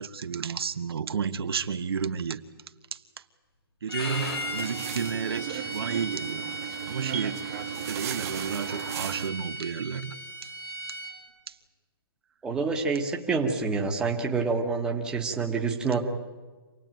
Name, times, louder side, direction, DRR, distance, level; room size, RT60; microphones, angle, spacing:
voice 1, 0.0-2.4 2.9-3.2 3.8-6.5 6.9-7.6 7.8-10.2 10.4-10.5 11.5-11.6, right 6 dB, 75° right, 8 dB, 1.4 m, -32 dB
Bowed string instrument, 3.9-11.1, equal, 80° left, 6.3 m, -37 dB
sound 1, 4.1-9.3, right 10 dB, 35° right, 1.5 m, -36 dB
voice 2, 12.4-16.1, right 4 dB, 5° right, 0 dB, 1.5 m, -27 dB
26.5 x 18.5 x 9.1 m, 1.3 s
hypercardioid pair, 165°, 13 cm